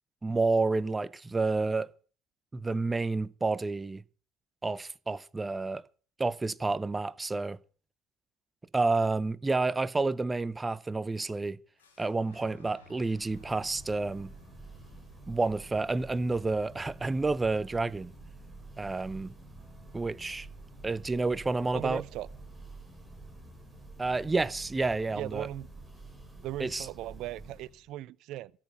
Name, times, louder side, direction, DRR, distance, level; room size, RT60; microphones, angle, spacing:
voice 1, 0.2-1.9 2.5-4.0 4.6-5.8 6.2-7.6 8.7-11.6 12.0-14.3 15.3-18.1 18.8-19.3 19.9-20.5 20.8-22.0 24.0-25.5 26.6-26.9, right 3 dB, 15° right, 0.8 m, -29 dB
Fire / Explosion, 11.8-17.7, left 3 dB, 85° left, 4.3 m, -59 dB
Church bell, 13.0-27.9, right 2 dB, ahead, 6.7 m, -49 dB
voice 2, 21.7-22.3 25.1-25.7 26.4-28.5, right 14 dB, 60° right, 0.6 m, -38 dB
13.5 x 7.9 x 8.8 m
hypercardioid pair, 65°, 0 cm